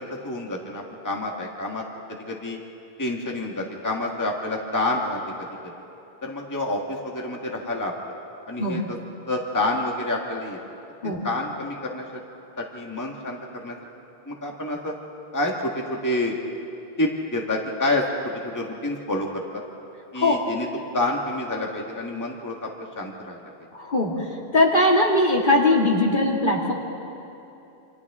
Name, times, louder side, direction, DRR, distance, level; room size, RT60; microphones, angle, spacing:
voice 1, 0.0-2.6 3.0-5.7 6.2-7.9 8.4-9.0 9.3-10.6 11.0-12.1 12.6-13.7 14.3-14.9 15.3-16.4 17.0-19.6 20.1-20.7 20.9-23.4, left 2 dB, 20° left, 0 dB, 1.6 m, -28 dB
voice 2, 23.8-24.2 24.5-26.7, left 1 dB, 55° left, -2 dB, 2.4 m, -20 dB
28.5 x 27.0 x 3.6 m, 2.9 s
omnidirectional pair, 1.0 m